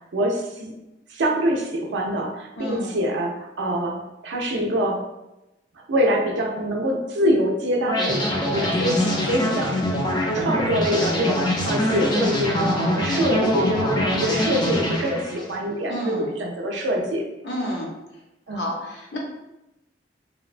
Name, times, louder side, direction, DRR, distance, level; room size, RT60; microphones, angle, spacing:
voice 1, 0.1-0.7 1.1-5.0 5.9-9.0 9.3-9.8 10.3-17.2 18.5-18.6, equal, 80° right, 0 dB, 0.5 m, -24 dB
voice 2, 2.6-3.0 9.0-9.3 15.8-16.3 17.4-17.9 18.5-19.2, equal, 65° left, -1 dB, 0.6 m, -30 dB
sound 1, 7.9-15.6, equal, 25° left, 0.4 m, -24 dB
2.8 x 2.1 x 2.4 m, 0.95 s
head